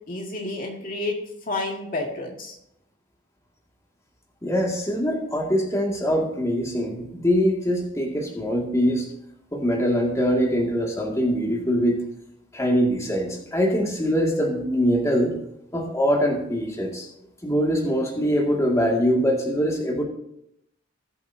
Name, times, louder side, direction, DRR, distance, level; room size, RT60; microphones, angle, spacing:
voice 1, 0.1-1.1 1.5-2.6, left 2 dB, 45° left, 0 dB, 2.0 m, -30 dB
voice 2, 4.4-9.1 9.5-12.0 12.5-15.3 15.7-17.1 17.4-20.0, equal, 15° left, -1 dB, 2.1 m, -23 dB
19.5 x 7.9 x 2.8 m, 0.78 s
head